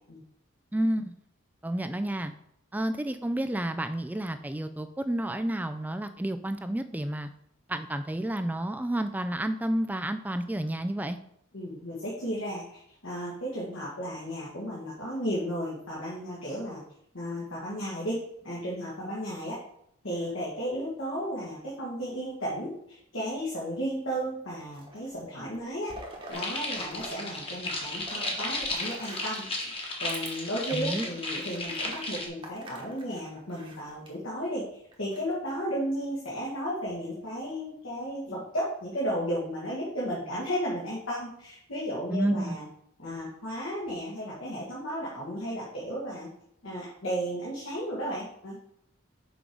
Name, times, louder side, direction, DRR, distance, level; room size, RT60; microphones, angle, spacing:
voice 1, 0.7-1.1 1.6-2.3 2.7-7.3 7.7-11.2 30.7-31.1 42.1-42.6, right 1 dB, 10° right, 9 dB, 0.3 m, -30 dB
voice 2, 11.5-16.8 17.1-19.6 20.0-25.9 26.3-29.7 30.0-42.7 43.0-46.3 46.6-48.6, equal, 85° left, -7 dB, 1.9 m, -34 dB
sound 1, 24.5-25.2 25.5-27.2 27.4-29.5 30.0-30.3 30.8-30.9 31.3-34.1 34.9-35.5, right 1 dB, 25° right, 1.2 m, -45 dB
sound 2, 26.3-32.3, left 2 dB, 25° left, 1.2 m, -34 dB
6.1 x 5.2 x 4.7 m, 0.71 s
head